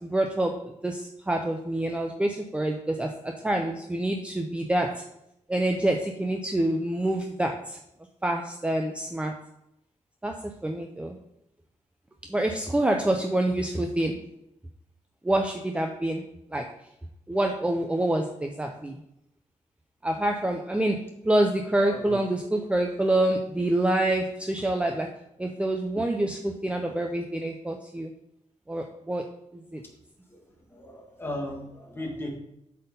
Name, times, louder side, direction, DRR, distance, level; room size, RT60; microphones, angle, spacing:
voice 1, 0.0-5.0 5.5-7.8 8.2-9.3 10.2-11.2 12.3-14.2 15.2-16.2 16.5-16.7 17.3-19.0 20.0-25.1 25.4-28.1 28.7-29.2 29.5-29.8, right 1 dB, 10° right, 3 dB, 0.5 m, -27 dB
voice 2, 21.8-22.2 30.3-30.4 30.7-32.4, left 1 dB, 20° left, 0 dB, 1.7 m, -36 dB
7.9 x 4.3 x 5.4 m, 0.82 s
wide cardioid pair, 135°, 13 cm